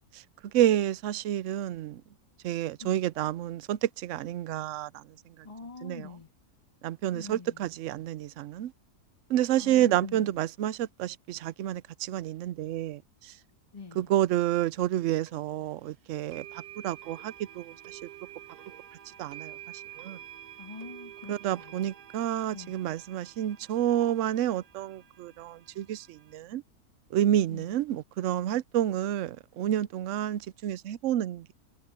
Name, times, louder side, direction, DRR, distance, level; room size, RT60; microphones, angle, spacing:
voice 1, 0.5-2.0 2.4-5.0 5.8-6.1 6.8-8.7 9.3-13.3 14.0-16.4 16.8-18.0 19.2-19.5 20.0-20.2 21.3-26.6 27.1-31.5, right 12 dB, 65° right, 0.8 m, -29 dB
voice 2, 5.4-6.3 7.1-7.7 9.6-10.4 13.7-14.1 20.6-21.9 22.5-22.8 27.5-27.7, left 4 dB, 20° left, 2.1 m, -45 dB
sound 1, 15.3-15.4 16.3-26.4, right 12 dB, 80° right, 1.4 m, -48 dB
omnidirectional pair, 1.7 m